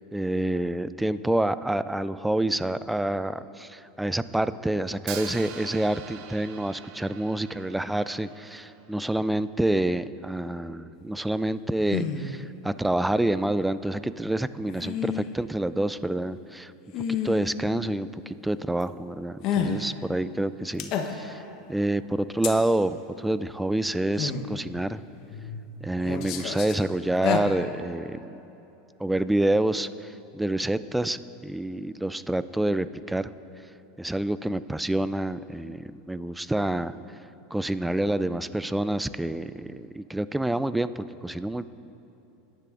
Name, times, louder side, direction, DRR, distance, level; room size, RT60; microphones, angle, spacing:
voice 1, 0.1-16.7 17.1-21.4 21.7-25.0 25.8-28.4 29.0-33.3 34.0-37.0 37.5-41.7, right 1 dB, 5° right, 15 dB, 0.3 m, -28 dB
Hi-hat, 5.1-9.0, right 9 dB, 60° right, 0.7 m, -42 dB
sound 1, 11.9-12.3 14.7-15.2 16.9-17.5 19.4-19.8 20.8-21.4 22.4-22.6 24.2-24.4 25.2-25.6 26.0-26.8 27.1-27.4, left 8 dB, 55° left, 0.9 m, -29 dB
19.5 x 10.0 x 2.5 m, 3.0 s
supercardioid pair, 110°, 0 cm